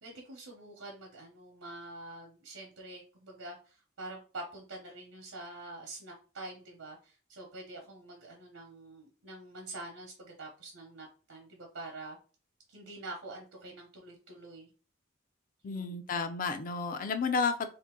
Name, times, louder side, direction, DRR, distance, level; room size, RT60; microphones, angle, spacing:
voice 1, 0.0-12.2 12.7-14.7 15.6-15.9, right 2 dB, 80° right, -1 dB, 0.8 m, -46 dB
voice 2, 15.6-17.7, left 4 dB, 45° left, 9 dB, 0.4 m, -31 dB
2.8 x 2.5 x 3.7 m, 0.37 s
head